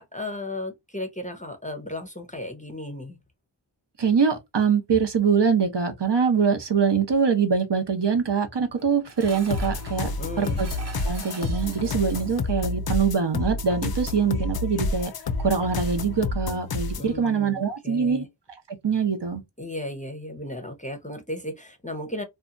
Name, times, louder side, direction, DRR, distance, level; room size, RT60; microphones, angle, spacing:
voice 1, 0.0-3.2 10.0-10.6 17.0-18.3 19.6-22.2, left 1 dB, 15° left, 0.7 m, -35 dB
voice 2, 4.0-10.1 10.4-10.7 11.0-15.1 15.4-18.3 18.7-19.4, right 6 dB, 55° right, 0.8 m, -23 dB
Dishes pots and pans, 8.8-12.6, right 2 dB, 30° right, 0.9 m, -44 dB
sound 1, 9.5-17.1, left 3 dB, 50° left, 0.5 m, -29 dB
2.7 x 2.3 x 2.4 m
wide cardioid pair, 45°, 49 cm